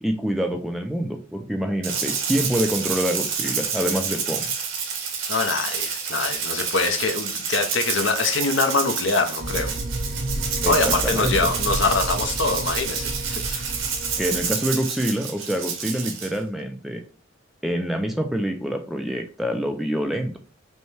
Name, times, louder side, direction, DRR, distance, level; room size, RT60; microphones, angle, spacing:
voice 1, 0.0-4.5 10.6-11.5 14.2-17.0 17.6-20.4, equal, ahead, 0.3 m, -26 dB
Rattle (instrument), 1.8-16.4, right 6 dB, 80° right, 1.0 m, -28 dB
voice 2, 5.3-9.7 10.6-13.7, left 3 dB, 65° left, 0.7 m, -24 dB
sound 1, 9.4-14.5, right 1 dB, 50° right, 0.6 m, -31 dB
5.3 x 2.2 x 3.2 m
head